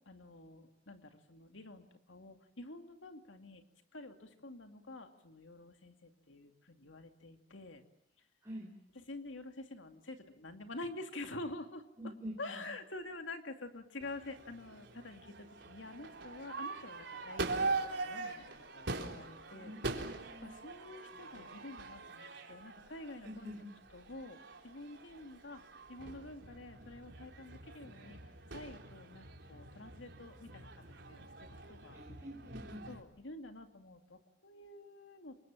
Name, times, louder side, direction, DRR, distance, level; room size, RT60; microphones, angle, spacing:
voice 1, 0.1-3.6 3.9-7.8 9.0-18.4 18.7-23.5 23.9-25.6 25.9-28.2 28.5-30.7 31.0-32.0 32.9-35.4, left 2 dB, 85° left, 5 dB, 2.5 m, -48 dB
voice 2, 12.0-12.6 19.5-20.5 23.2-23.7 31.9-32.9, equal, 15° right, 0 dB, 4.1 m, -47 dB
Crowd / Fireworks, 14.0-33.0, right 3 dB, 70° right, 3.9 m, -43 dB
28.0 x 24.0 x 7.5 m, 0.75 s
head